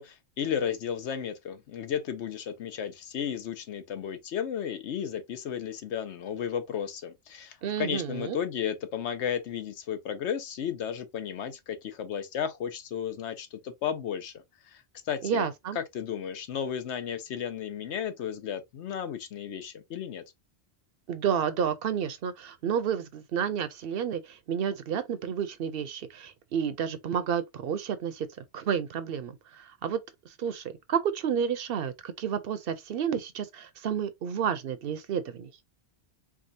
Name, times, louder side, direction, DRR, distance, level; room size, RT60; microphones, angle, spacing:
voice 1, 0.0-15.5 15.7-20.2, left 8 dB, 85° left, 1.0 m, -34 dB
voice 2, 7.6-8.4 15.2-15.8 21.1-28.3 28.5-30.0 30.3-35.5, right 8 dB, 65° right, 0.7 m, -30 dB
4.7 x 2.3 x 2.6 m
omnidirectional pair, 1.1 m